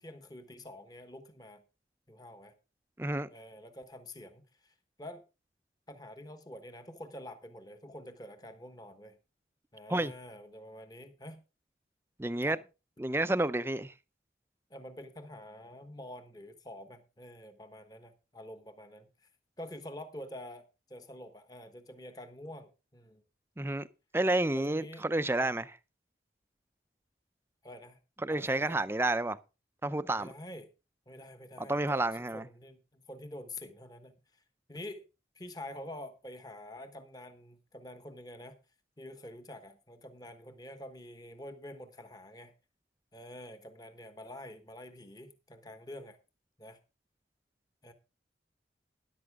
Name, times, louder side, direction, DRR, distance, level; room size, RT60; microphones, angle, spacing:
voice 1, 0.0-1.6 2.1-2.5 3.3-5.2 5.9-9.2 9.7-11.4 12.4-12.6 14.7-19.1 19.6-23.2 24.5-25.0 25.4-25.5 27.6-28.0 28.3-28.8 30.2-30.7 31.1-34.4 34.7-35.0 35.3-38.6 39.0-42.5 43.1-46.2 46.6-46.8 47.8-47.9, left 1 dB, 20° left, 1.1 m, -47 dB
voice 2, 3.0-3.3 9.9-10.1 12.2-12.6 13.0-13.9 23.6-23.9 24.1-25.7 28.2-29.4 29.8-30.3 31.6-32.4, right 2 dB, 15° right, 0.5 m, -30 dB
13.0 x 10.5 x 3.6 m
head